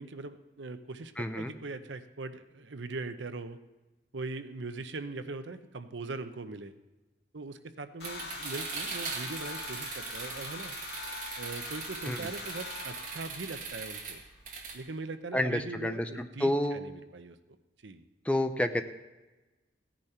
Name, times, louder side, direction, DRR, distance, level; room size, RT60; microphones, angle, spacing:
voice 1, 0.0-3.6 4.1-6.7 7.3-10.8 11.4-14.2 14.7-17.4 17.8-18.0, right 3 dB, 90° right, 10 dB, 0.8 m, -41 dB
voice 2, 1.2-1.5 12.0-12.3 15.3-16.8 18.2-18.8, left 1 dB, 5° left, 8 dB, 0.6 m, -29 dB
sound 1, 8.0-14.1, left 3 dB, 65° left, 1.8 m, -43 dB
sound 2, 8.0-14.8, right 5 dB, 45° right, 1.9 m, -40 dB
16.5 x 10.5 x 4.4 m, 1.1 s
head